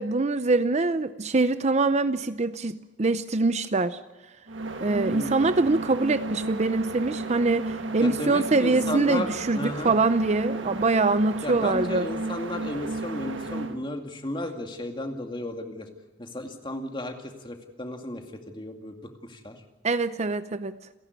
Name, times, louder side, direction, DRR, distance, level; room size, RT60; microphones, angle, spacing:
voice 1, 0.0-4.0 4.8-12.1 19.8-20.7, right 3 dB, 35° right, 12 dB, 0.6 m, -24 dB
sound 1, 4.5-13.8, right 2 dB, 75° right, 1.7 m, -33 dB
voice 2, 5.1-5.6 8.0-10.0 11.4-15.9 16.2-19.6, left 1 dB, 25° left, 4 dB, 2.3 m, -34 dB
29.5 x 11.5 x 9.6 m, 1.2 s
head